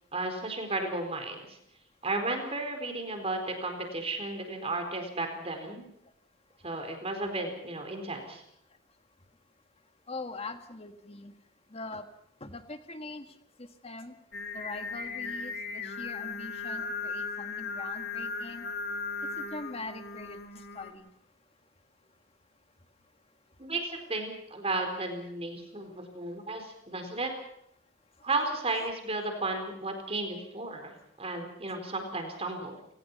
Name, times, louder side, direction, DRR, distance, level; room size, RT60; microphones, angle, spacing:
voice 1, 0.1-1.6 2.0-5.9 6.6-8.4 23.6-27.3 28.2-32.8, right 2 dB, 30° right, 5 dB, 4.2 m, -34 dB
voice 2, 10.1-11.3 11.7-12.0 12.4-13.3 13.6-14.1 14.5-18.6 19.4-20.4 20.7-21.1, left 2 dB, 30° left, 7 dB, 1.7 m, -42 dB
Singing, 14.3-20.9, left 4 dB, 50° left, 2.3 m, -37 dB
30.0 x 18.5 x 5.5 m, 0.74 s
head